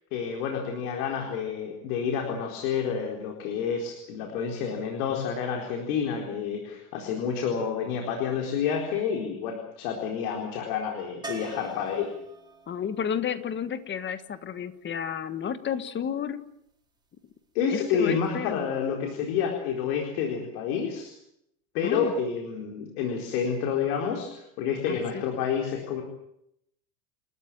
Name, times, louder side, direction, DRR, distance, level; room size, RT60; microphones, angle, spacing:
voice 1, 0.1-12.1 17.5-21.1 21.7-26.0, left 7 dB, 75° left, 2 dB, 4.3 m, -29 dB
sound 1, 11.2-15.1 17.8-17.9 18.1-18.2, right 4 dB, 10° right, 4.5 m, -45 dB
voice 2, 12.7-16.4 17.7-18.7 21.8-22.1 24.9-25.3, left 8 dB, 25° left, 11 dB, 1.6 m, -32 dB
29.0 x 14.0 x 9.0 m, 0.78 s
supercardioid pair, 145°, 44 cm